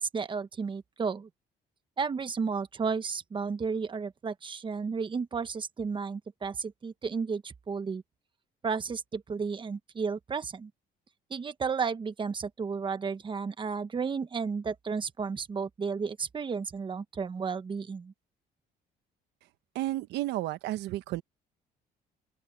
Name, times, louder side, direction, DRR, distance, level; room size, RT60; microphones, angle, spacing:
voice 1, 0.0-1.3 2.0-8.0 8.6-10.7 11.3-18.1, right 5 dB, 30° right, 1.3 m, -33 dB
voice 2, 19.7-21.2, right 16 dB, 85° right, 1.1 m, -32 dB
open air
cardioid pair, 110°, 17 cm